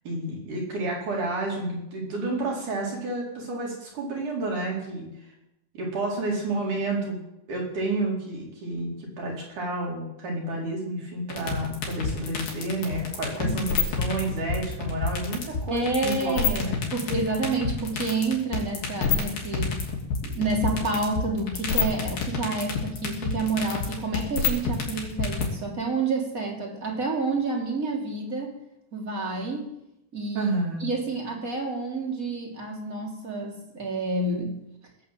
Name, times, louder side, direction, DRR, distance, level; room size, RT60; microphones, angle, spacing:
voice 1, 0.1-5.3 5.7-7.2 7.5-16.8 30.3-30.8, right 2 dB, 65° right, -3 dB, 5.9 m, -30 dB
sound 1, 11.3-25.4, left 6 dB, 85° left, 4.7 m, -27 dB
voice 2, 15.7-19.8 20.2-28.5 28.9-29.7 30.1-30.5 30.8-34.6, right 3 dB, 25° right, 0 dB, 2.9 m, -29 dB
19.0 x 9.0 x 7.7 m, 0.87 s
omnidirectional pair, 3.9 m